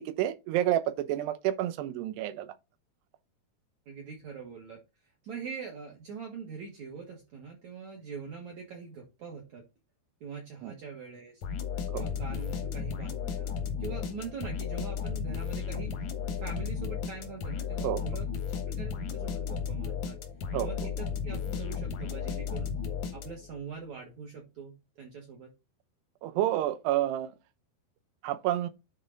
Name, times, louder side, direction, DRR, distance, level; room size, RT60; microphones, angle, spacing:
voice 1, 0.0-2.5 10.6-10.7 11.9-12.1 17.8-18.0 20.5-20.7 26.2-27.3 28.2-28.7, right 13 dB, 85° right, 2.9 m, -29 dB
voice 2, 3.9-4.8 5.2-9.6 10.2-11.4 11.9-13.5 13.8-16.0 16.4-18.3 18.8-20.2 20.6-22.7 23.1-25.5, right 5 dB, 55° right, 2.5 m, -43 dB
sound 1, 11.4-23.6, left 7 dB, 65° left, 1.9 m, -34 dB
9.8 x 4.2 x 4.0 m
omnidirectional pair, 4.7 m